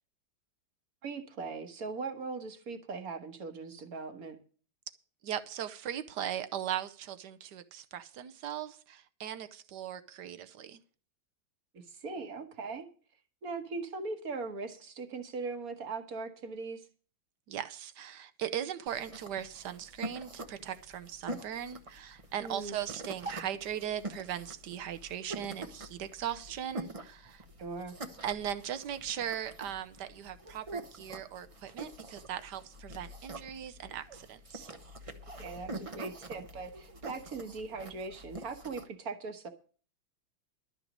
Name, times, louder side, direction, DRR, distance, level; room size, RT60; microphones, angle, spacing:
voice 1, 1.0-4.4 11.7-12.9 13.4-16.8 22.4-22.8 27.6-28.0 35.3-39.5, right 4 dB, 50° right, 1.6 m, -40 dB
voice 2, 5.2-10.8 17.5-27.4 28.2-34.7, right 10 dB, 65° right, 1.2 m, -39 dB
sound 1, 18.9-38.8, right 2 dB, 30° right, 0.6 m, -45 dB
12.0 x 6.0 x 8.7 m
omnidirectional pair, 2.2 m